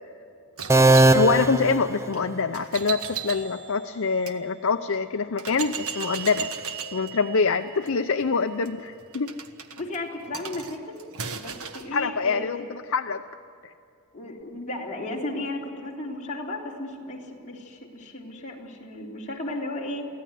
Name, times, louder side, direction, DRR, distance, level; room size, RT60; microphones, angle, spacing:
sound 1, 0.6-4.4 4.9-5.0 5.4-11.9, right 7 dB, 80° right, 1.4 m, -37 dB
sound 2, 0.7-2.6, right 2 dB, 15° right, 0.5 m, -19 dB
voice 1, 1.1-6.5 6.9-9.3 11.9-13.2 13.6-13.7, left 4 dB, 70° left, 7 dB, 0.6 m, -25 dB
voice 2, 9.8-11.0 11.4-12.6 14.1-20.1, left 2 dB, 35° left, -3 dB, 3.7 m, -34 dB
24.0 x 16.0 x 9.4 m, 2.6 s
head